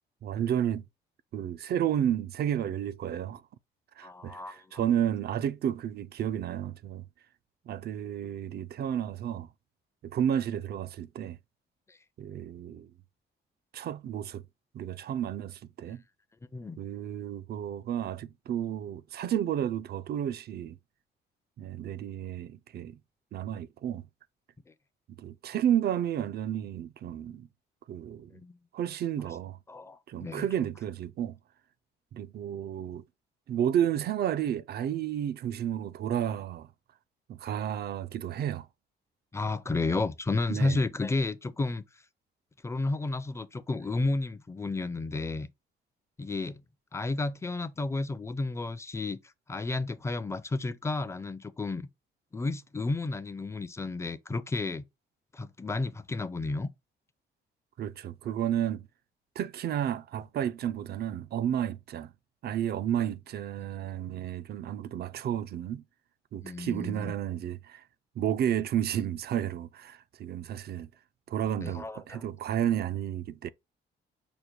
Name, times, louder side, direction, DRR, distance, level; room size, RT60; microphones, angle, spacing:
voice 1, 0.2-0.8 1.3-3.4 4.0-7.0 7.7-9.5 10.1-11.4 12.2-12.9 13.7-14.4 14.7-16.0 16.8-20.8 21.6-23.0 23.3-24.0 25.2-27.5 27.9-28.3 28.7-29.6 30.1-31.4 32.1-33.0 33.5-36.7 37.3-38.7 40.5-40.8 57.8-58.9 59.4-62.1 62.4-65.8 66.3-67.8 68.2-70.9 71.3-73.5, right 10 dB, 55° right, 0.4 m, -31 dB
voice 2, 4.0-4.7 11.9-12.0 16.5-16.8 28.3-28.6 29.7-30.5 39.3-41.8 42.6-45.5 46.2-46.6 46.9-49.2 49.5-51.9 52.3-54.8 55.3-56.7 66.4-67.1 71.6-72.2, left 3 dB, 15° left, 0.5 m, -32 dB
5.2 x 2.2 x 4.5 m
cardioid pair, 90°, 20 cm